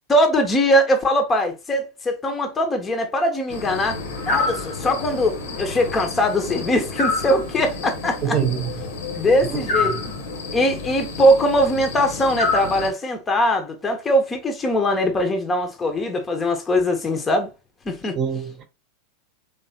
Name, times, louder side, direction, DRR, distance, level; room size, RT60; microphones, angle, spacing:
voice 1, 0.1-8.4 9.2-10.0 10.5-17.5 17.9-18.2, equal, 15° left, 0.8 m, -21 dB
sound 1, 3.5-12.9, left 3 dB, 60° left, 1.1 m, -29 dB
voice 2, 8.2-8.7 9.5-9.6 9.9-10.0 18.2-18.6, right 7 dB, 30° right, 0.9 m, -24 dB
3.9 x 3.5 x 2.7 m
figure-of-eight pair, 90°, 0 cm